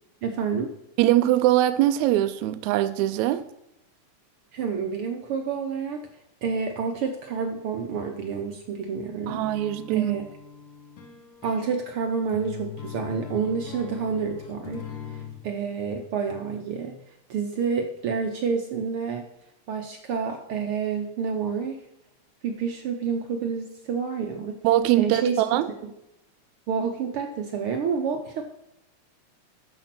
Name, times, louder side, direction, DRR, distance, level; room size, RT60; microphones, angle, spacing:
voice 1, 0.2-0.7 4.5-6.0 6.4-9.5 9.9-10.3 11.4-14.8 15.1-17.0 17.3-19.2 19.7-21.8 22.4-24.6 24.9-25.4 25.8-25.9 26.7-28.4, right 6 dB, 65° right, 1.4 m, -29 dB
voice 2, 1.0-3.4 9.3-10.2 24.6-25.7, right 14 dB, 80° right, 1.9 m, -22 dB
sound 1, 9.3-15.4, left 8 dB, 60° left, 2.4 m, -41 dB
12.0 x 5.1 x 5.9 m
omnidirectional pair, 3.4 m